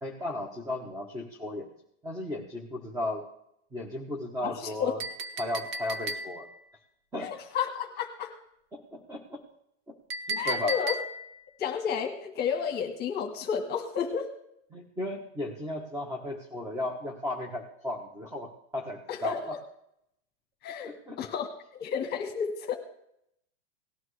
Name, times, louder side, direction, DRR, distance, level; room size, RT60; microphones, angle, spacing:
voice 1, 0.0-1.7 2.0-3.3 3.7-5.0 5.4-6.5 7.1-7.3 8.7-9.4 9.9-10.0 10.3-10.7 14.7-19.4 20.8-21.2, left 1 dB, 10° right, 1 dB, 1.3 m, -35 dB
voice 2, 4.4-4.9 7.2-8.4 10.4-11.0 11.6-14.3 19.1-19.6 20.6-22.8, left 7 dB, 30° left, 4 dB, 1.4 m, -32 dB
Chink clink, 5.0-6.6 10.1-11.4, right 1 dB, 55° right, 1.3 m, -34 dB
18.5 x 12.0 x 3.3 m, 0.75 s
supercardioid pair, 150°, 34 cm